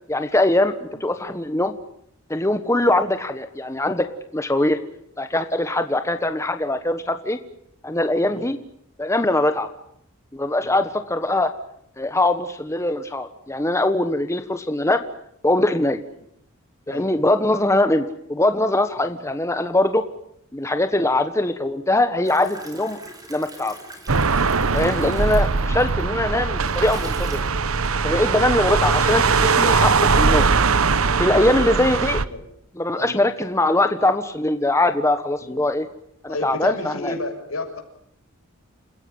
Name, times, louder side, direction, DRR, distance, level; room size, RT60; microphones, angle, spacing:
voice 1, 0.1-1.7 2.3-4.1 4.3-4.8 5.2-7.4 7.8-8.6 9.0-9.7 10.3-11.5 12.0-15.0 15.4-16.0 16.9-20.0 20.5-23.0 23.3-23.7 24.7-27.4 28.0-30.5 31.2-32.2 32.8-35.9 36.2-37.1, left 1 dB, 15° left, 8 dB, 1.3 m, -22 dB
sound 1, 22.2-26.0 26.5-28.2, right 1 dB, 20° right, 5.5 m, -43 dB
sound 2, 24.1-32.2, right 4 dB, 85° right, 1.1 m, -20 dB
voice 2, 31.4-32.4 33.0-33.2 35.4-35.6 36.3-37.8, left 2 dB, 80° left, 4 dB, 6.6 m, -33 dB
29.0 x 16.0 x 9.6 m, 0.73 s
head